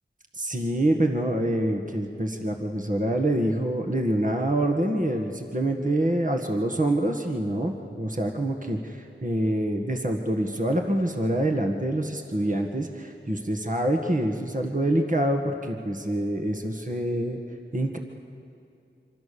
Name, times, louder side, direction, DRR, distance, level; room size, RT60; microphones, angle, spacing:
voice 1, 0.3-17.4 17.7-18.0, right 1 dB, 40° right, 3 dB, 1.8 m, -26 dB
26.0 x 26.0 x 7.0 m, 2.6 s
wide cardioid pair, 45°, 21 cm